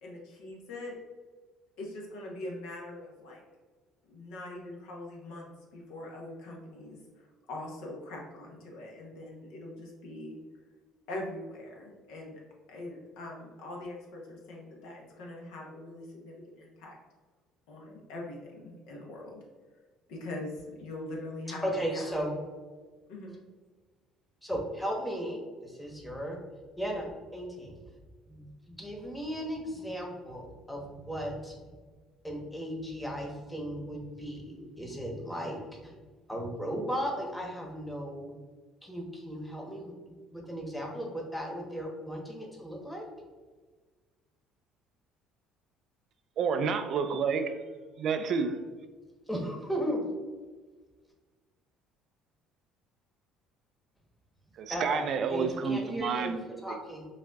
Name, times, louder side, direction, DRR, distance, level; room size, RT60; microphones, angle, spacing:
voice 1, 0.0-1.0 1.8-3.4 4.1-10.4 11.1-12.4 12.7-17.0 17.7-19.4 20.1-22.3 23.1-23.4, left 1 dB, 80° left, 0.9 m, -42 dB
voice 2, 21.6-22.3 24.4-26.4 26.8-27.7 28.3-31.5 32.2-35.9 36.3-38.3 38.8-43.1 49.3-50.0 54.7-57.1, equal, 5° left, 1.0 m, -36 dB
voice 3, 46.4-47.6 48.0-48.6 54.6-56.8, right 5 dB, 60° right, 0.3 m, -30 dB
5.2 x 2.5 x 2.3 m
supercardioid pair, 75°, 0 cm